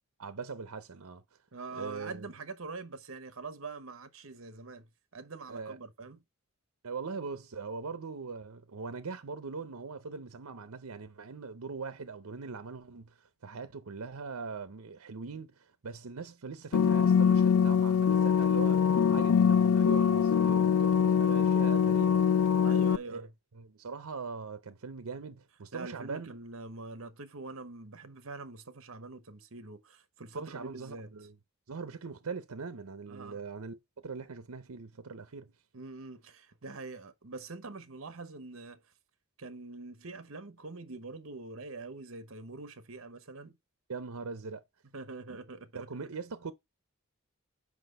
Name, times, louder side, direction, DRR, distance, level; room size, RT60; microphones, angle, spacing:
voice 1, 0.2-1.2 1.7-2.3 5.5-5.8 6.8-13.1 13.4-18.9 19.1-22.2 23.0-23.3 23.5-26.3 30.3-31.3 31.7-35.5 43.9-44.6 45.3-45.4 45.7-46.5, right 4 dB, 85° right, 0.7 m, -41 dB
voice 2, 1.5-6.2 18.6-19.0 21.2-21.4 22.6-23.3 25.7-31.1 33.1-33.4 35.7-38.8 39.4-43.6 44.9-45.9, right 3 dB, 65° right, 1.0 m, -44 dB
sound 1, 16.7-23.0, left 7 dB, 75° left, 0.4 m, -24 dB
6.0 x 5.1 x 6.5 m
head